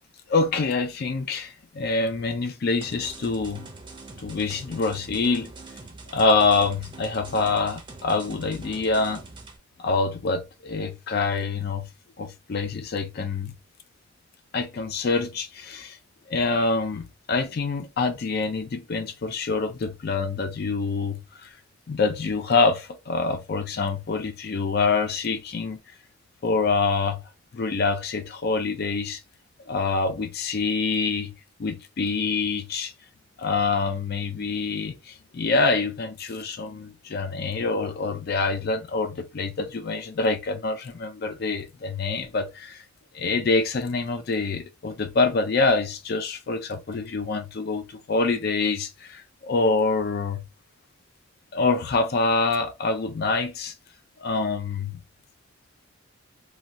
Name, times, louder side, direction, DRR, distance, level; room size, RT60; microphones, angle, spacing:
voice 1, 0.3-3.6 4.2-5.5 6.1-9.2 9.8-11.9 12.2-13.5 14.5-16.0 16.3-21.5 21.9-25.8 26.4-27.2 27.5-29.2 29.7-31.3 31.6-32.9 33.4-42.8 43.1-50.4 51.5-53.7 54.2-55.0, left 3 dB, 50° left, 0.4 m, -26 dB
sound 1, 2.8-9.6, right 3 dB, 25° right, 0.5 m, -43 dB
3.1 x 2.3 x 2.6 m
head